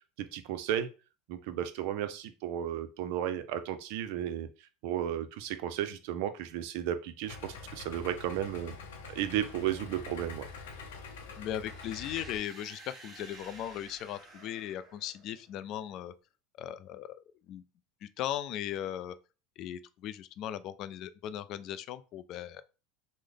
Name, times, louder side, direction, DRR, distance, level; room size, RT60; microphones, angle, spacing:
voice 1, 0.2-0.9 1.3-4.5 4.8-8.8 9.1-10.4, right 11 dB, 70° right, 0.5 m, -34 dB
Idling, 7.3-12.4, left 5 dB, 90° left, 0.7 m, -45 dB
voice 2, 11.4-16.1 16.6-17.1 17.5-17.6 18.0-19.1 19.6-22.6, left 11 dB, 50° left, 0.3 m, -38 dB
sound 1, 11.6-15.6, right 2 dB, 25° right, 1.1 m, -52 dB
3.3 x 2.0 x 3.7 m
supercardioid pair, 120°, 0 cm